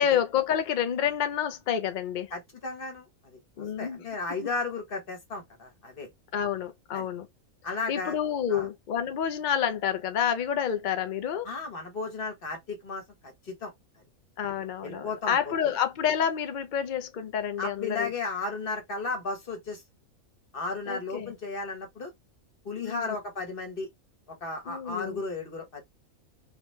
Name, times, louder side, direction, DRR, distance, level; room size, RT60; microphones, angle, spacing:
voice 1, 0.0-2.3 3.6-4.0 6.3-7.3 7.9-11.5 14.4-18.1 20.9-21.3 22.8-23.2 24.7-25.2, left 8 dB, 75° left, 0.4 m, -29 dB
voice 2, 2.3-6.1 6.9-7.1 7.6-8.2 8.5-8.7 11.4-13.7 14.8-15.8 17.6-19.8 20.5-22.1 22.6-23.9 24.4-25.8, left 3 dB, 40° left, 1.3 m, -35 dB
3.1 x 2.9 x 3.1 m
omnidirectional pair, 1.5 m